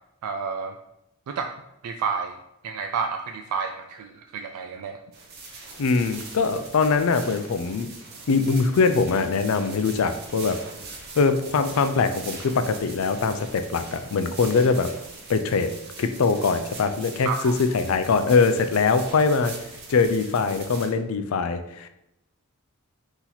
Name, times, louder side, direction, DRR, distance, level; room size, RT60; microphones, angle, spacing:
voice 1, 0.2-0.7 1.3-1.5 1.8-2.4 2.6-5.0 17.2-17.5, right 5 dB, 85° right, 4 dB, 0.3 m, -30 dB
sound 1, 5.1-20.9, right 3 dB, 45° right, 0.9 m, -41 dB
voice 2, 5.8-7.9 8.3-10.6 11.1-14.9 15.3-15.7 16.0-19.5 19.9-21.9, left 4 dB, 65° left, 9 dB, 0.4 m, -22 dB
4.1 x 2.9 x 3.9 m, 0.85 s
head